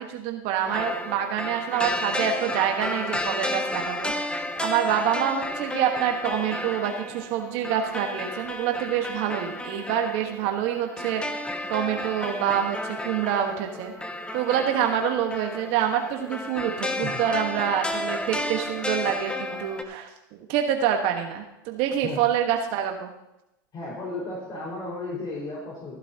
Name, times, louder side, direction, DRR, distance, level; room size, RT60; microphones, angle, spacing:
voice 1, 0.0-4.1 4.6-13.9 14.3-23.1, right 9 dB, 60° right, 4 dB, 1.4 m, -26 dB
sound 1, 0.6-19.8, left 1 dB, 10° left, 1.2 m, -32 dB
voice 2, 23.7-26.0, left 2 dB, 40° left, -6 dB, 5.1 m, -34 dB
15.0 x 12.0 x 2.9 m, 0.88 s
hypercardioid pair, 100°, 11 cm